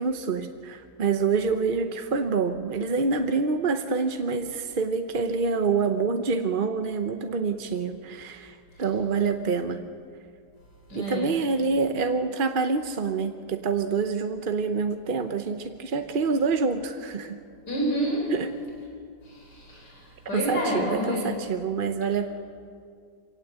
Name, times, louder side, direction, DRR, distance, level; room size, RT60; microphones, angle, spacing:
voice 1, 0.0-9.9 10.9-17.4 18.3-18.5 20.3-22.3, right 4 dB, 40° right, 7 dB, 0.8 m, -26 dB
voice 2, 10.9-11.3 17.7-18.2 19.3-21.3, equal, 80° left, -2 dB, 5.5 m, -29 dB
24.5 x 18.0 x 8.1 m, 2.3 s
omnidirectional pair, 1.8 m